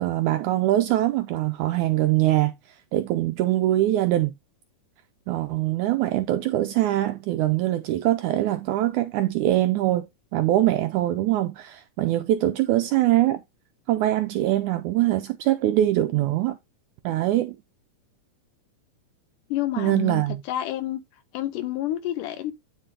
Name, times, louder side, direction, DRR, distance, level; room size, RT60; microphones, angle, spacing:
voice 1, 0.0-2.5 2.9-4.3 5.3-13.4 13.9-16.6 17.0-17.6 19.8-20.4, right 14 dB, 80° right, 1.8 m, -23 dB
voice 2, 19.5-21.0 21.3-22.5, left 13 dB, 75° left, 2.3 m, -29 dB
9.7 x 4.3 x 3.6 m
omnidirectional pair, 4.0 m